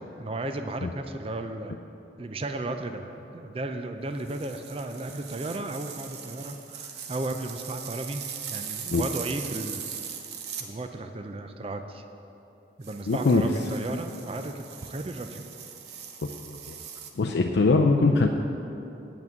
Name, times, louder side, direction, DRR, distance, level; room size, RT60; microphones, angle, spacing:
voice 1, 0.2-1.7 2.2-8.2 8.5-9.8 10.6-12.0 12.8-15.5, right 2 dB, 30° right, 7 dB, 0.4 m, -34 dB
sound 1, 4.2-10.7 12.8-17.1, right 7 dB, 65° right, 0.8 m, -40 dB
voice 2, 13.1-13.4 16.2-16.8 17.2-18.3, left 3 dB, 75° left, 2 dB, 0.4 m, -22 dB
8.9 x 6.0 x 7.9 m, 2.9 s
head